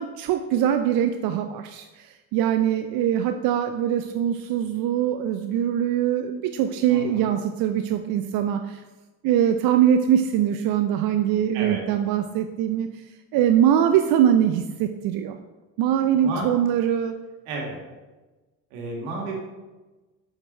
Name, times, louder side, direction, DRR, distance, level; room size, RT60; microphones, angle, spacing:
voice 1, 0.0-8.8 9.2-12.9 13.3-15.4 15.8-17.1, right 10 dB, 60° right, 7 dB, 0.6 m, -22 dB
voice 2, 6.9-7.2 11.5-11.8 16.2-16.5 17.5-17.8 18.7-19.3, right 3 dB, 80° right, -1 dB, 2.0 m, -32 dB
7.3 x 6.7 x 3.2 m, 1.2 s
hypercardioid pair, 70°, 41 cm